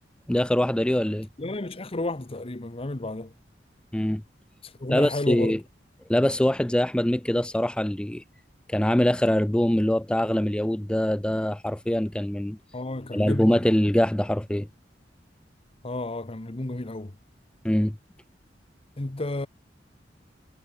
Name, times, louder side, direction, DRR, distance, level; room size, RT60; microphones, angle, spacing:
voice 1, 0.3-1.3 3.9-4.2 4.9-5.6 6.1-8.2 8.7-12.6 13.1-14.7 17.6-18.0, left 1 dB, 5° left, 0.4 m, -23 dB
voice 2, 1.4-3.3 4.6-5.6 12.7-13.6 15.8-17.1 19.0-19.5, left 2 dB, 35° left, 1.0 m, -31 dB
head